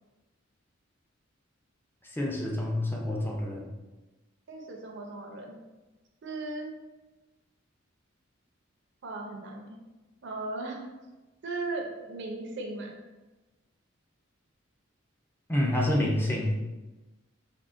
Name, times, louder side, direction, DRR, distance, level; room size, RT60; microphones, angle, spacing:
voice 1, 2.0-3.7 15.5-16.6, left 1 dB, 10° left, -2 dB, 0.3 m, -28 dB
voice 2, 4.5-5.6 6.2-6.7 9.0-9.8 10.2-10.8 11.4-12.9, right 2 dB, 60° right, 1 dB, 0.5 m, -37 dB
3.6 x 2.1 x 2.4 m, 1.1 s
head